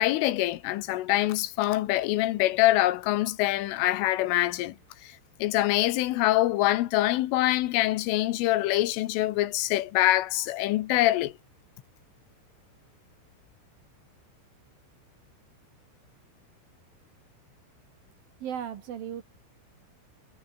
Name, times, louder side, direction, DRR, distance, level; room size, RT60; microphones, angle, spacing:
voice 1, 0.0-4.8 5.0-11.3, left 16 dB, 80° left, 3.6 m, -25 dB
voice 2, 18.4-19.2, right 9 dB, 60° right, 2.9 m, -35 dB
omnidirectional pair, 5.8 m